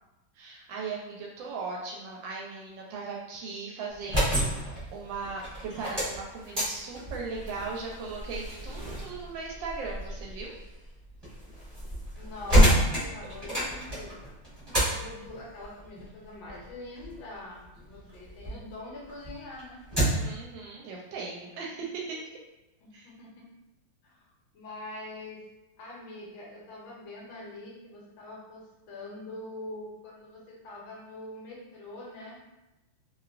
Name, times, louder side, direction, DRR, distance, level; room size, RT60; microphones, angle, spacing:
voice 1, 0.3-10.5 20.2-22.2 22.9-23.1, right 4 dB, 75° right, -2 dB, 1.2 m, -38 dB
sound 1, 3.9-18.6 19.0-20.4, right 1 dB, 15° right, 1.0 m, -29 dB
voice 2, 12.2-14.1 14.8-19.8 22.8-23.5 24.0-25.4 25.8-32.4, left 2 dB, 75° left, -3 dB, 1.4 m, -44 dB
3.0 x 2.8 x 2.4 m, 0.97 s
omnidirectional pair, 2.3 m